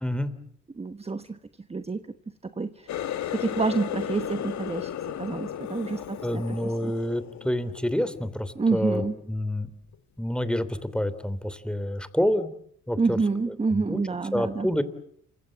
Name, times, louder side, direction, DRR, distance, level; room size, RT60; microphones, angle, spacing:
voice 1, 0.0-0.3 6.0-9.7 10.2-12.5 12.9-13.2 13.7-14.0 14.3-14.8, left 1 dB, 5° left, 13 dB, 3.1 m, -28 dB
voice 2, 0.7-1.4 1.7-2.1 2.4-3.0 3.3-4.9 5.2-6.9 8.5-9.1 13.0-14.7, right 4 dB, 20° right, 10 dB, 1.2 m, -28 dB
Water tap faucet, 2.9-8.4 8.8-9.2 9.7-10.0 10.7-10.8, left 10 dB, 70° left, 1.7 m, -35 dB
28.5 x 25.5 x 7.6 m, 0.66 s
cardioid pair, 90°, 30 cm